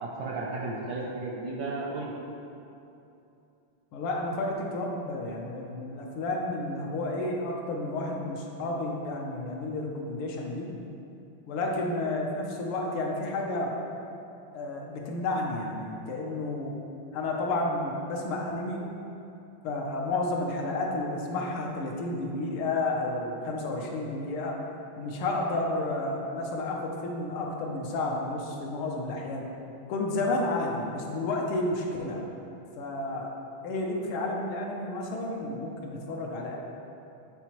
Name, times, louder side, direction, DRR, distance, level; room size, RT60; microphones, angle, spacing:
voice 1, 0.0-2.1, right 3 dB, 75° right, -4 dB, 1.0 m, -34 dB
voice 2, 3.9-10.7 11.5-13.7 14.5-16.8 17.1-18.9 19.6-24.6 25.0-29.5 29.9-32.2 32.8-33.3 33.6-36.6, left 2 dB, 75° left, 0 dB, 1.5 m, -31 dB
8.9 x 4.1 x 2.9 m, 2.7 s
omnidirectional pair, 2.4 m